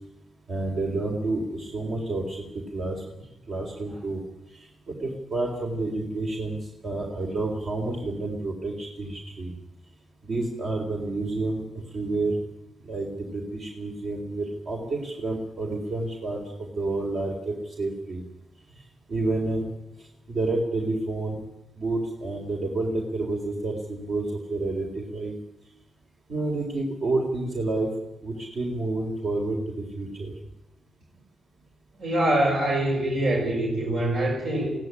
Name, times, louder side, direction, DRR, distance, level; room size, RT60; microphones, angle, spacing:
voice 1, 0.5-3.0 3.5-4.2 4.5-6.6 6.8-9.5 10.2-11.6 11.9-12.4 12.8-18.2 19.1-19.7 20.3-21.4 21.8-25.4 26.3-27.9 28.2-30.3, right 2 dB, 70° right, 0 dB, 4.0 m, -29 dB
voice 2, 32.0-34.7, right 1 dB, 85° right, -3 dB, 6.6 m, -24 dB
21.0 x 17.0 x 10.0 m, 0.93 s
cardioid pair, 100°, 0 cm